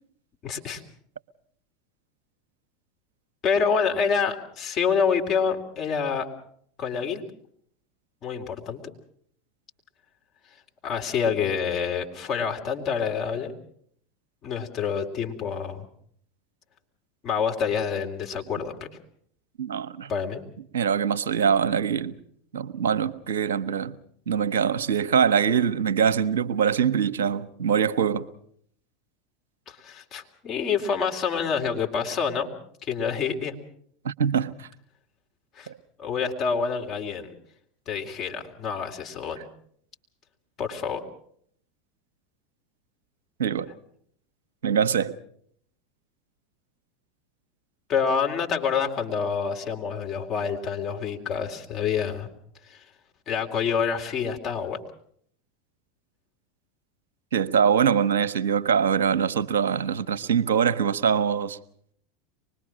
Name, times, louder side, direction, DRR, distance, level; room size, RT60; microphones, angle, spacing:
voice 1, 0.4-0.8 3.4-6.3 6.8-7.2 8.2-8.8 10.8-13.5 14.4-15.9 17.2-18.7 20.1-20.4 29.7-32.5 32.8-33.5 35.6-35.7 36.0-37.3 37.9-39.4 40.6-41.0 47.9-52.3 52.7-52.8 53.3-54.8, left 6 dB, 40° left, 3.3 m, -27 dB
voice 2, 19.6-20.1 20.7-22.1 22.5-24.0 24.3-28.3 34.0-34.7 35.7-35.8 43.4-43.7 44.6-45.1 57.3-61.6, right 7 dB, 70° right, 0.9 m, -23 dB
24.5 x 21.0 x 6.2 m
figure-of-eight pair, 80°, 0 cm